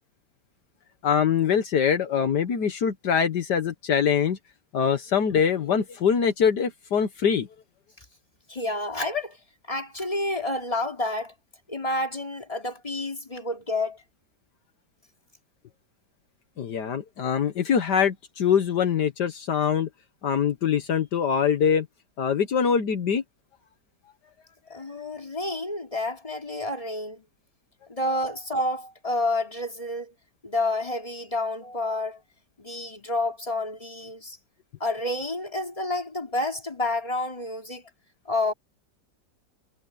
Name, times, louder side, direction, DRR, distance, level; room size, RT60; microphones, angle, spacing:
voice 1, 1.0-4.4 4.7-7.5 16.6-19.9 20.2-21.9 22.2-23.2, left 7 dB, 75° left, 1.8 m, -23 dB
voice 2, 8.5-9.4 9.7-11.3 11.7-14.0 24.7-27.2 27.9-30.1 30.4-32.2 32.6-34.4 34.8-37.9 38.3-38.5, left 2 dB, 20° left, 3.6 m, -29 dB
omnidirectional pair, 1.9 m